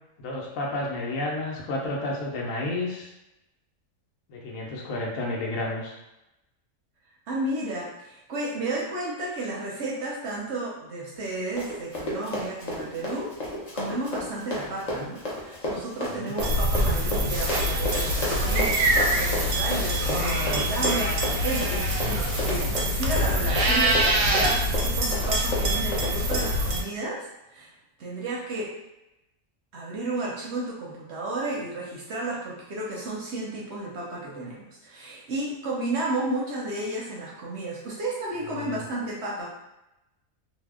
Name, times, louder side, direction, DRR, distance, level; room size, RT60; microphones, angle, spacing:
voice 1, 0.2-3.1 4.3-6.0 16.1-16.4 38.5-38.9, left 2 dB, 70° left, -2 dB, 1.0 m, -31 dB
voice 2, 7.3-13.3 13.7-27.7 28.0-28.7 29.7-39.4, right 2 dB, 65° right, -4 dB, 0.8 m, -32 dB
Run, 11.2-26.5, left 1 dB, 45° left, 0.5 m, -32 dB
sound 1, 16.4-26.8, right 1 dB, 90° right, 1.1 m, -25 dB
sound 2, 17.3-22.7, equal, 20° left, 0.9 m, -37 dB
2.7 x 2.0 x 3.4 m, 0.93 s
omnidirectional pair, 1.5 m